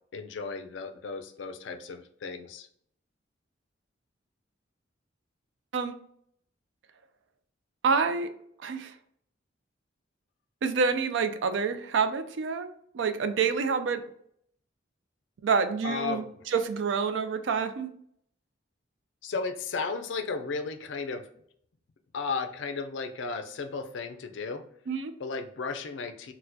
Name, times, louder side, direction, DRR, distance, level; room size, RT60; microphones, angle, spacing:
voice 1, 0.1-2.7 15.8-16.5 19.2-21.3 22.1-24.6 25.2-26.3, left 4 dB, 70° left, 8 dB, 0.4 m, -34 dB
voice 2, 7.8-8.3 8.6-8.9 10.6-12.7 12.9-14.0 15.4-16.2 16.5-17.9 24.9-25.1, right 5 dB, 70° right, 9 dB, 0.4 m, -27 dB
4.2 x 2.1 x 2.7 m, 0.67 s
head